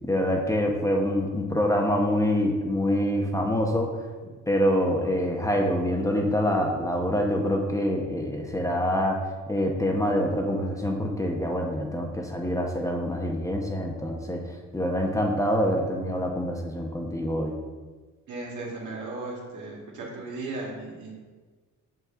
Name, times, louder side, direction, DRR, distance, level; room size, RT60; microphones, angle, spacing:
voice 1, 0.0-4.0 4.5-14.4 14.7-17.5, equal, 10° left, 1 dB, 0.8 m, -26 dB
voice 2, 18.3-21.1, right 2 dB, 80° right, -3 dB, 2.0 m, -36 dB
5.7 x 5.6 x 3.7 m, 1.4 s
cardioid pair, 90°, 30 cm